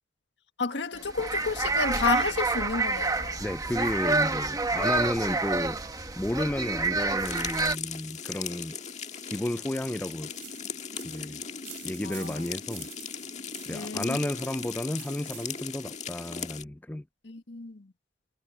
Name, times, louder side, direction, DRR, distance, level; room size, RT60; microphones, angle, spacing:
voice 1, 0.6-3.4 12.0-12.4 13.7-14.2 17.2-17.9, left 4 dB, 75° left, 1.6 m, -31 dB
sound 1, 1.0-7.8, right 3 dB, 20° right, 1.2 m, -28 dB
voice 2, 3.4-5.8 6.2-8.8 9.3-10.3 11.0-11.4 11.8-12.9 13.7-17.0, left 1 dB, 10° left, 0.4 m, -32 dB
sound 2, 7.3-16.6, left 7 dB, 40° left, 1.7 m, -38 dB
sound 3, 10.3-15.8, right 15 dB, 80° right, 4.8 m, -50 dB
head